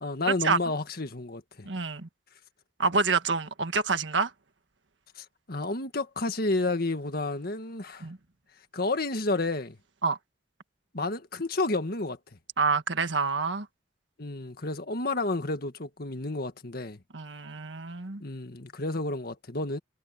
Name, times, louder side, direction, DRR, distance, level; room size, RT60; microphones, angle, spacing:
voice 1, 0.0-1.7 5.2-8.1 8.7-9.8 10.9-12.2 14.2-17.0 18.2-19.8, left 2 dB, 55° left, 1.8 m, -31 dB
voice 2, 1.6-2.1 2.8-4.3 8.0-8.2 10.0-10.2 12.6-13.6 17.1-18.2, right 4 dB, 80° right, 1.6 m, -27 dB
head